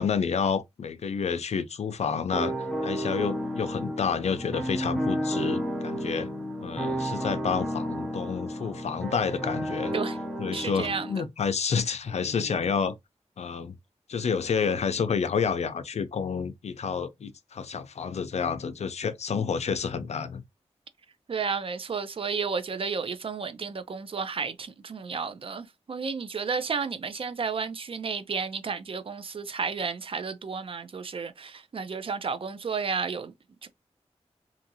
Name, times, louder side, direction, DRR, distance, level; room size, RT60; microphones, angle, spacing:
voice 1, 0.0-2.5 2.8-6.3 6.6-9.9 10.4-12.9 13.4-13.7 14.1-20.4, left 6 dB, 70° left, 0.5 m, -29 dB
sound 1, 2.3-11.3, equal, ahead, 0.6 m, -32 dB
voice 2, 10.5-11.2 21.3-33.3 33.6-33.7, right 5 dB, 50° right, 0.5 m, -32 dB
2.8 x 2.5 x 2.7 m
wide cardioid pair, 70°, 12 cm